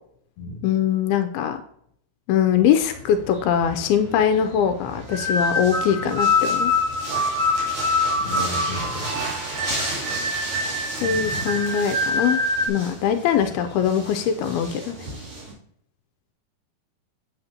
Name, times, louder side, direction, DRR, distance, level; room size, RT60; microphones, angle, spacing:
voice 1, 0.6-1.6 2.3-6.7 11.0-12.4 12.7-15.0, left 8 dB, 85° left, 7 dB, 2.5 m, -22 dB
sound 1, 2.8-15.5, right 1 dB, 40° right, 3.5 m, -34 dB
sound 2, 5.1-12.7, left 2 dB, 75° right, 3.4 m, -24 dB
voice 2, 8.2-9.1 11.0-11.5, left 2 dB, 55° left, 1 dB, 2.6 m, -34 dB
8.2 x 7.8 x 2.8 m, 0.68 s
omnidirectional pair, 4.3 m